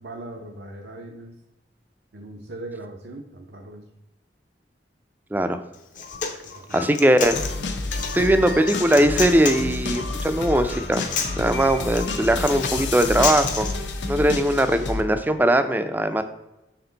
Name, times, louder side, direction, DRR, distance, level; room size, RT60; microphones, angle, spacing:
voice 1, 0.0-1.3 2.1-3.8 6.5-6.8, right 2 dB, 80° right, 2 dB, 0.6 m, -39 dB
voice 2, 5.3-5.6 6.7-7.4 8.1-11.1 11.3-13.7 14.1-16.2, right 1 dB, 10° right, 9 dB, 0.3 m, -20 dB
Human voice, 5.7-13.7, left 6 dB, 45° left, 0.7 m, -31 dB
sound 1, 7.2-15.0, left 3 dB, 85° left, 0.7 m, -30 dB
5.9 x 4.3 x 3.9 m, 0.95 s
head